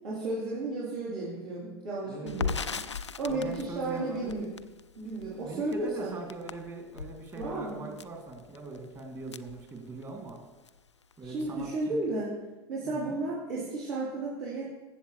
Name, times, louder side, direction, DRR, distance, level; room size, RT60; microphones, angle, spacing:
voice 1, 0.0-2.8 3.2-4.5 5.0-6.2 7.3-7.9 11.2-12.3 12.7-14.7, right 2 dB, 70° right, -9 dB, 3.6 m, -33 dB
voice 2, 2.1-2.6 3.3-4.4 5.4-10.4 11.2-12.0 12.8-13.2, right 3 dB, 25° right, 1 dB, 2.3 m, -41 dB
Crackle, 2.3-10.3 10.7-10.8 11.1-11.8, left 5 dB, 90° left, 0.4 m, -39 dB
15.0 x 7.2 x 3.3 m, 1.1 s
figure-of-eight pair, 80°, 14 cm